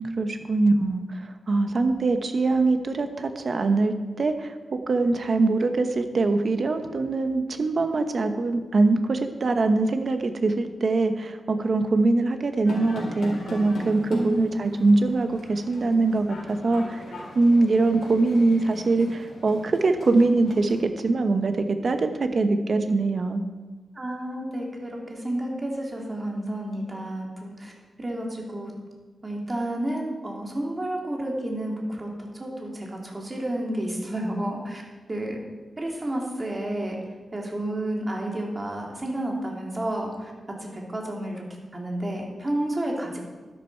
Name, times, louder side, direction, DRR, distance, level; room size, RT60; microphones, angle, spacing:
voice 1, 0.0-17.0 17.3-23.5, right 3 dB, 50° right, 7 dB, 1.1 m, -23 dB
sound 1, 12.6-20.8, left 1 dB, 85° left, 3.9 m, -39 dB
voice 2, 14.1-14.7 23.9-27.7 28.0-28.7 29.2-34.8 35.1-35.4 35.8-37.0 37.3-40.3 40.6-41.4 41.7-43.2, right 1 dB, 25° right, -1 dB, 2.4 m, -30 dB
12.0 x 11.0 x 4.6 m, 1.3 s
wide cardioid pair, 125°, 0 cm